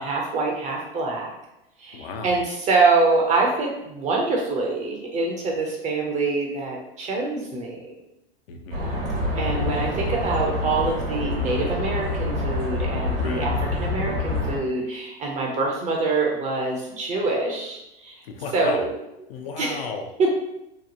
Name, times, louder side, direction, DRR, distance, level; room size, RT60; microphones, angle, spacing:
voice 1, 0.0-1.3 1.8-7.9 9.4-18.2 18.5-18.9 19.6-19.8 20.2-20.3, right 3 dB, 25° right, -1 dB, 0.4 m, -25 dB
voice 2, 1.9-2.4 8.5-9.2 13.2-13.7 18.2-18.9 19.3-20.1, left 4 dB, 75° left, 5 dB, 0.5 m, -35 dB
sound 1, 8.7-14.6, left 2 dB, 80° right, 1.0 m, -26 dB
2.9 x 2.0 x 2.5 m, 0.89 s
hypercardioid pair, 105°, 30 cm